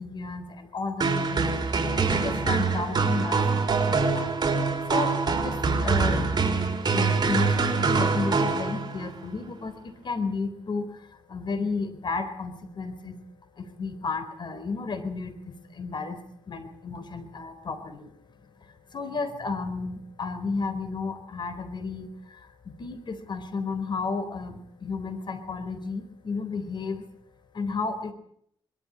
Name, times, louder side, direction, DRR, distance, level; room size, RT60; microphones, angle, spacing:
voice 1, 0.0-4.3 4.9-6.4 6.8-13.2 13.6-18.1 18.6-27.1 27.5-28.1, left 4 dB, 55° left, 9 dB, 4.1 m, -33 dB
sound 1, 1.0-9.1, right 4 dB, 50° right, 5.6 m, -24 dB
22.0 x 14.0 x 9.9 m, 0.69 s
cardioid pair, 80°, 9 cm